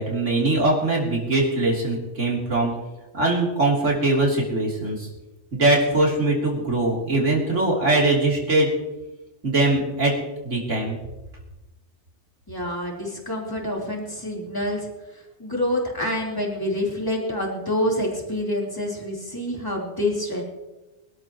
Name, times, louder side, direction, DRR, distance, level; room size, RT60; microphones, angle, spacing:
voice 1, 0.0-2.7 3.1-5.1 5.5-8.7 9.4-10.1 10.4-11.0, right 2 dB, 90° right, -3 dB, 3.6 m, -21 dB
voice 2, 12.5-14.9 15.4-20.4, left 1 dB, 20° left, -3 dB, 3.5 m, -27 dB
25.5 x 12.5 x 3.0 m, 1.0 s
omnidirectional pair, 1.2 m